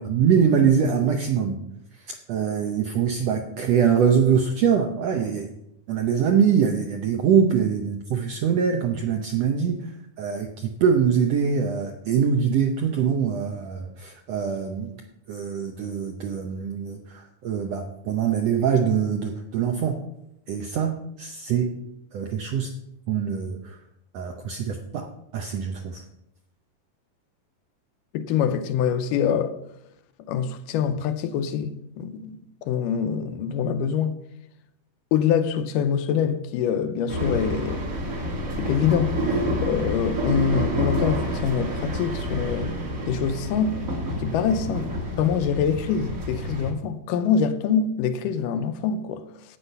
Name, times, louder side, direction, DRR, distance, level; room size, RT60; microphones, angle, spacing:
voice 1, 0.0-1.6 2.1-5.5 5.9-9.9 10.2-15.0 15.3-20.0 20.5-21.8 22.1-22.7 23.1-23.8 24.1-26.0, right 7 dB, 75° right, 1.5 m, -23 dB
voice 2, 28.1-29.6 30.3-34.2 35.1-37.9 38.6-39.3 39.6-42.7 43.1-43.8 44.2-44.9 45.2-49.2, left 7 dB, 80° left, 2.2 m, -25 dB
sound 1, 37.1-46.7, equal, 40° right, 1.3 m, -28 dB
10.0 x 8.2 x 5.4 m
omnidirectional pair, 3.9 m